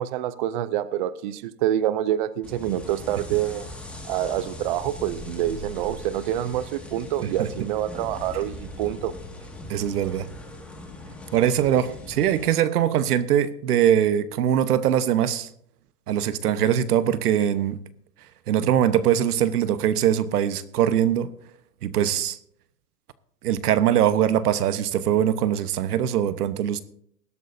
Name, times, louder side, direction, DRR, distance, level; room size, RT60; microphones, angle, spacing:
voice 1, 0.0-3.7 4.0-9.1, right 12 dB, 35° right, 0.4 m, -27 dB
sound 1, 2.4-12.4, left 1 dB, 5° left, 1.8 m, -40 dB
voice 2, 9.7-10.3 11.3-15.5 16.1-17.8 18.5-21.3 21.8-22.4 23.4-26.8, right 10 dB, 75° right, 1.1 m, -22 dB
20.0 x 12.5 x 2.6 m
hypercardioid pair, 140°, 46 cm